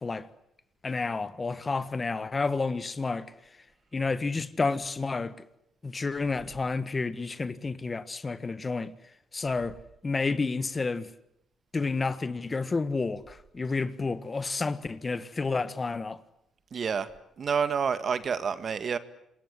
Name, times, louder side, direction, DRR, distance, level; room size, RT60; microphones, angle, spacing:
voice 1, 0.8-3.3 3.9-5.3 5.8-8.9 9.3-9.8 10.0-11.1 11.7-16.2, left 4 dB, 30° left, 1.5 m, -30 dB
voice 2, 16.7-17.1 17.4-19.0, right 6 dB, 50° right, 1.9 m, -28 dB
27.5 x 21.5 x 9.9 m
cardioid pair, 90°, 0 cm